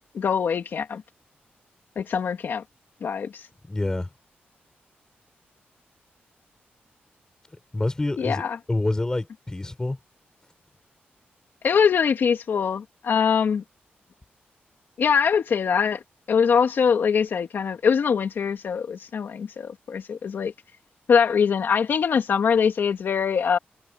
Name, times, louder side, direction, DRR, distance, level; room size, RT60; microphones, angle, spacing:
voice 1, 0.1-1.0 2.0-2.6 3.0-3.4 8.2-8.6 11.6-13.6 15.0-16.0 16.3-20.5 21.1-23.6, left 6 dB, 65° left, 2.4 m, -23 dB
voice 2, 3.6-4.1 7.7-8.4 8.7-10.0, left 2 dB, 15° left, 6.8 m, -27 dB
wide cardioid pair, 110°, 4 cm